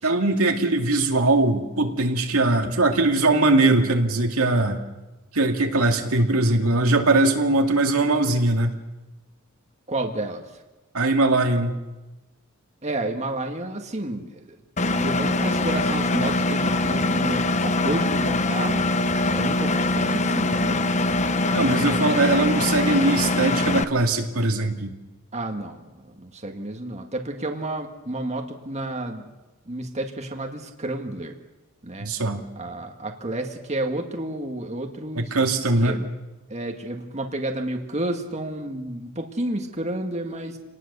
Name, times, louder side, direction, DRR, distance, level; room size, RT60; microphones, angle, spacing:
voice 1, 0.0-4.8 5.3-8.7 10.9-11.8 21.5-24.9 32.0-32.4 35.2-36.0, right 2 dB, 85° right, 3 dB, 2.3 m, -21 dB
voice 2, 9.9-10.4 12.8-14.6 15.0-18.9 19.3-20.8 21.5-22.1 25.3-29.3 29.7-31.3 31.8-32.1 32.6-35.3 35.6-36.1 36.5-40.6, right 1 dB, 30° right, 3 dB, 1.8 m, -31 dB
Engine, 14.8-23.8, left 2 dB, 35° left, 0.8 m, -23 dB
27.5 x 19.0 x 6.8 m, 1.1 s
head